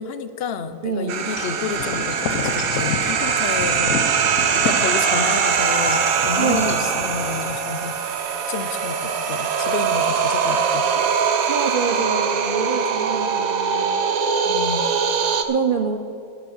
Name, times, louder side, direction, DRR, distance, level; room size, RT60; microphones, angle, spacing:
voice 1, 0.0-4.0 4.5-8.2 8.5-10.9 14.4-14.9, left 6 dB, 55° left, 11 dB, 0.7 m, -30 dB
voice 2, 0.8-1.3 4.3-4.5 6.4-6.8 11.0-11.2 11.5-14.0 15.4-16.0, right 5 dB, 55° right, 7 dB, 0.6 m, -26 dB
sound 1, 1.1-15.4, right 6 dB, 80° right, 1.3 m, -22 dB
Wind chime / Wind, 1.3-7.6, left 6 dB, 80° left, 1.2 m, -31 dB
10.5 x 9.6 x 6.3 m, 2.5 s
omnidirectional pair, 1.5 m